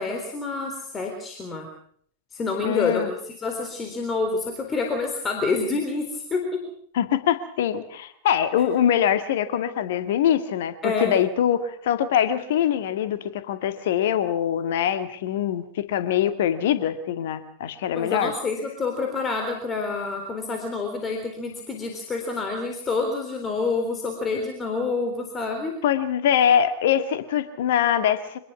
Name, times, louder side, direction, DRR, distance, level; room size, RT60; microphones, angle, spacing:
voice 1, 0.0-1.7 2.3-6.7 10.8-11.1 17.9-25.8, left 3 dB, 20° left, 4 dB, 3.7 m, -28 dB
voice 2, 2.6-3.1 6.9-18.3 25.8-28.4, left 9 dB, 55° left, 10 dB, 2.0 m, -23 dB
25.5 x 20.0 x 6.0 m, 0.62 s
figure-of-eight pair, 90°, 0 cm